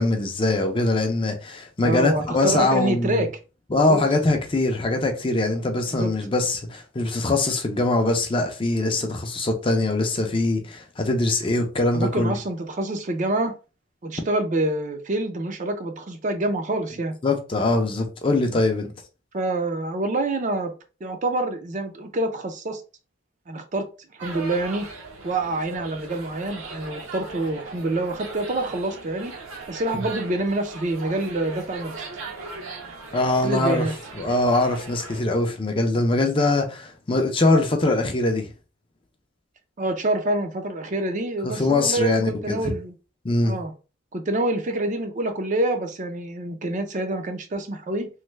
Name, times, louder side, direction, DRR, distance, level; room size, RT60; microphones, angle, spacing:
voice 1, 0.0-3.2 3.7-12.3 17.2-18.9 33.1-33.9 34.2-38.5 41.4-42.7 43.2-43.6, left 2 dB, 25° left, 0.4 m, -22 dB
voice 2, 1.8-3.3 3.8-4.0 5.9-6.1 11.9-13.5 14.0-17.2 19.3-20.7 21.0-22.8 23.5-23.9 24.1-24.9 25.2-29.3 29.7-32.0 33.4-33.9 39.8-42.9 43.4-43.7 44.1-48.1, right 2 dB, 35° right, 0.4 m, -26 dB
sound 1, 24.2-35.2, right 3 dB, 75° right, 0.9 m, -39 dB
3.2 x 2.1 x 3.2 m
head